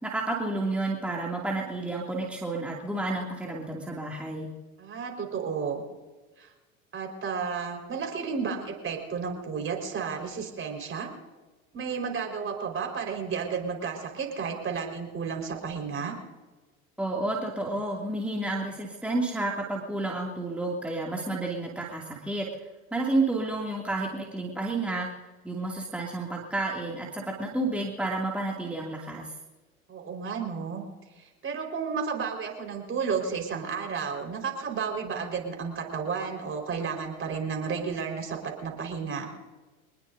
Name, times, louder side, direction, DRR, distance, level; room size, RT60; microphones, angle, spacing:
voice 1, 0.0-4.5 17.0-22.5 22.9-25.1 25.4-29.3, right 2 dB, 5° right, -3 dB, 2.6 m, -30 dB
voice 2, 4.8-5.8 6.4-6.5 6.9-11.1 11.7-16.2 29.9-30.8 31.2-39.3, right 6 dB, 30° right, 3 dB, 4.8 m, -32 dB
25.5 x 20.5 x 2.7 m, 1.2 s
hypercardioid pair, 85°, 41 cm